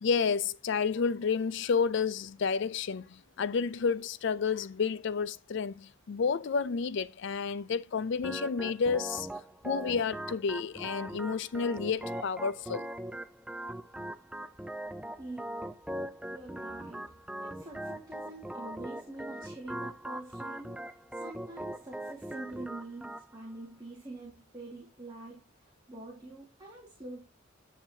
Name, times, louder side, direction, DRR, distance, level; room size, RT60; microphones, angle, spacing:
voice 1, 0.0-9.3 9.6-12.9, left 5 dB, 60° left, 0.4 m, -30 dB
Organ, 8.2-23.2, right 1 dB, 5° right, 0.4 m, -41 dB
voice 2, 16.3-27.2, right 2 dB, 20° right, 1.9 m, -45 dB
9.7 x 7.4 x 2.7 m
head